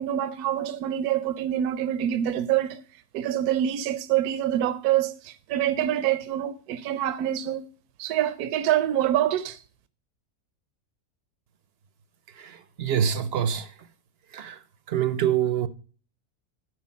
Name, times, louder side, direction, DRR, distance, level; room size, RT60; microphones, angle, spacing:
voice 1, 0.0-2.8 3.1-7.6 8.0-9.6, right 11 dB, 80° right, 1.1 m, -26 dB
voice 2, 12.4-13.7 14.3-14.6 14.9-15.7, right 9 dB, 55° right, 0.7 m, -25 dB
11.5 x 4.7 x 6.1 m
omnidirectional pair, 1.6 m